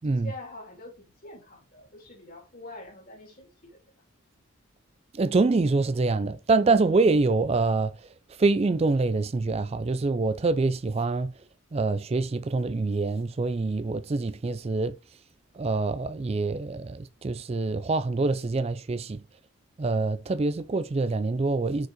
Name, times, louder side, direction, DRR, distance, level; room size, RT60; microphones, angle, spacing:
voice 1, 0.1-3.8, left 2 dB, 40° left, 3.5 m, -45 dB
voice 2, 5.1-7.9 8.4-11.3 11.7-14.9 15.6-19.2 19.8-21.9, right 3 dB, 30° right, 0.3 m, -25 dB
6.3 x 5.3 x 5.0 m
head